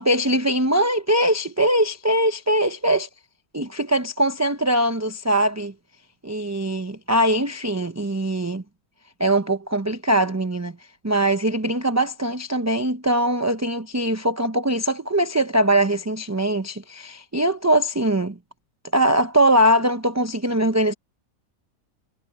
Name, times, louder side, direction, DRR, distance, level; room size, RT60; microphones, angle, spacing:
voice 1, 0.0-3.1 3.5-5.7 6.2-8.6 9.2-10.7 11.0-18.4 18.9-20.9, right 1 dB, 15° right, 0.6 m, -21 dB
omnidirectional pair, 1.5 m